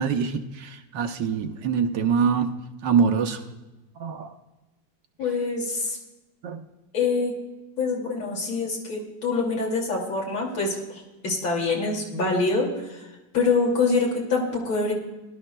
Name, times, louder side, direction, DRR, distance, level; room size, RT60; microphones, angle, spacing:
voice 1, 0.0-2.5 2.8-3.4 4.0-4.3 6.4-6.6, right 6 dB, 70° right, 6 dB, 1.3 m, -24 dB
voice 2, 5.2-6.0 6.9-7.3 7.8-13.0 13.3-14.9, left 3 dB, 85° left, -3 dB, 3.2 m, -25 dB
20.5 x 12.0 x 2.2 m, 1.1 s
omnidirectional pair, 2.1 m